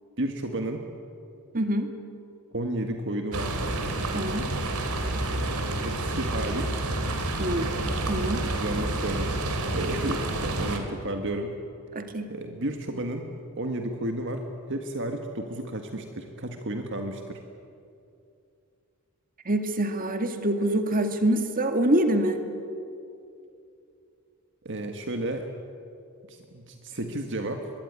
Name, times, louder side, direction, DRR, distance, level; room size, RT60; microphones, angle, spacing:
voice 1, 0.2-0.8 2.5-3.6 5.3-6.9 8.4-9.3 9.7-11.5 12.3-13.3 13.6-17.4 24.7-25.5 26.3-27.7, right 1 dB, 55° right, 5 dB, 1.8 m, -32 dB
voice 2, 1.5-1.9 4.1-4.5 7.4-7.7 8.1-8.4 11.9-12.3 19.5-22.4, right 1 dB, 40° right, 6 dB, 2.3 m, -25 dB
sound 1, 3.3-10.8, right 2 dB, 80° right, 3.2 m, -29 dB
24.5 x 22.5 x 9.8 m, 2.5 s
head